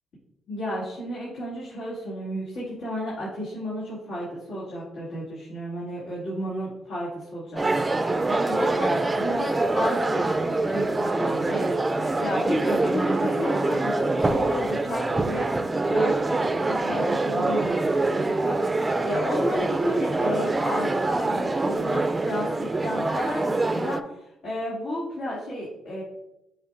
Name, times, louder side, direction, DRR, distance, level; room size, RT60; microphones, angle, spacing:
voice 1, 0.5-15.5 15.9-26.0, equal, 90° left, -9 dB, 2.3 m, -32 dB
sound 1, 7.6-24.0, right 2 dB, 20° right, 0.3 m, -25 dB
6.7 x 5.8 x 2.5 m, 0.89 s
cardioid pair, 90°, 0 cm